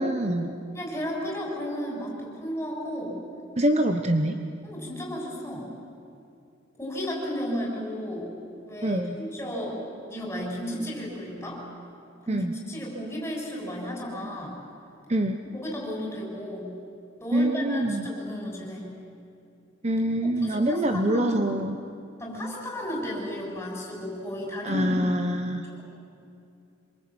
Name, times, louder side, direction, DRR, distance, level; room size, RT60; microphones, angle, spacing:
voice 1, 0.0-0.5 3.6-4.4 8.8-9.2 12.3-12.5 15.1-15.4 17.3-18.1 19.8-21.8 24.6-25.7, right 1 dB, 35° right, 6 dB, 1.0 m, -25 dB
voice 2, 0.7-3.2 4.6-5.7 6.8-8.3 8.7-11.6 12.2-14.6 15.5-16.7 17.2-18.9 20.2-21.4 22.2-25.0 25.7-25.8, equal, 15° left, -2 dB, 6.8 m, -33 dB
26.0 x 23.0 x 8.8 m, 2.6 s
head